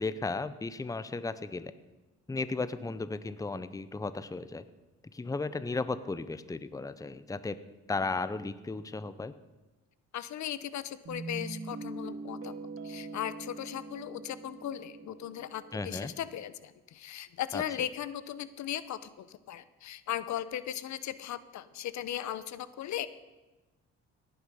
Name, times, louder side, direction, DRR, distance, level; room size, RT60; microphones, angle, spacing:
voice 1, 0.0-1.7 2.3-4.7 5.1-7.6 7.9-9.3 15.7-16.1 17.5-17.6, left 3 dB, 10° left, 14 dB, 0.7 m, -35 dB
voice 2, 10.1-12.5 12.8-23.1, left 11 dB, 70° left, 15 dB, 0.8 m, -37 dB
Guitar, 11.1-16.1, right 3 dB, 45° right, 2.0 m, -43 dB
17.0 x 9.6 x 5.5 m, 1.1 s
cardioid pair, 90°, 30 cm